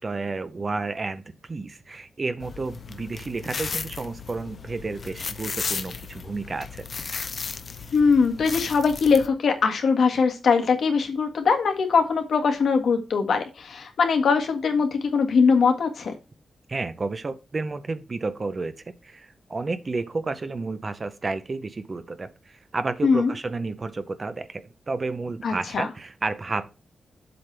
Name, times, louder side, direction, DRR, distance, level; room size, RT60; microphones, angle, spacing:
voice 1, 0.0-6.9 16.7-18.7 19.0-26.7, right 3 dB, 30° right, 12 dB, 0.7 m, -31 dB
sound 1, 2.4-9.3, left 5 dB, 45° left, 0.6 m, -35 dB
voice 2, 7.9-16.1 23.0-23.3 25.4-25.9, left 5 dB, 75° left, 4 dB, 1.7 m, -21 dB
7.8 x 7.5 x 3.4 m, 0.29 s
wide cardioid pair, 150°, 0 cm